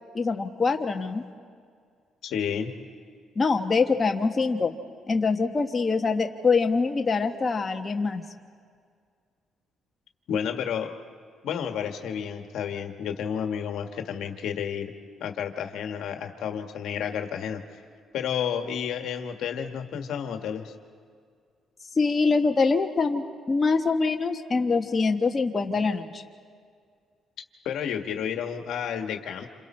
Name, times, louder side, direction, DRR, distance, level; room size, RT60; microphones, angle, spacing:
voice 1, 0.1-1.2 3.3-4.7 5.1-8.2 22.0-26.2, left 4 dB, 30° left, 3 dB, 1.3 m, -24 dB
voice 2, 2.2-2.7 10.3-10.9 11.4-14.9 15.2-17.6 18.1-20.7 27.6-29.5, left 8 dB, 80° left, 5 dB, 1.6 m, -31 dB
28.5 x 27.0 x 4.4 m, 2.1 s
cardioid pair, 90°, 0 cm